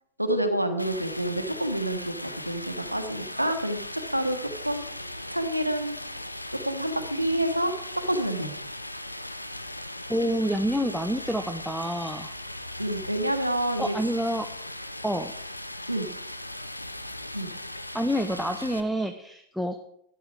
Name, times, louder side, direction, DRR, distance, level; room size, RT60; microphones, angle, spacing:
voice 1, 0.2-4.4 4.6-4.8 5.3-6.0 6.6-8.5 12.8-13.9 15.9-16.1 17.3-17.5, right 1 dB, 90° right, 7 dB, 1.3 m, -28 dB
Stream, 0.8-18.8, left 1 dB, 85° left, 0.8 m, -38 dB
voice 2, 10.1-12.3 13.8-14.5 15.0-15.3 17.9-19.8, equal, ahead, 6 dB, 0.8 m, -28 dB
12.5 x 11.0 x 4.8 m, 0.74 s
figure-of-eight pair, 90°, 0 cm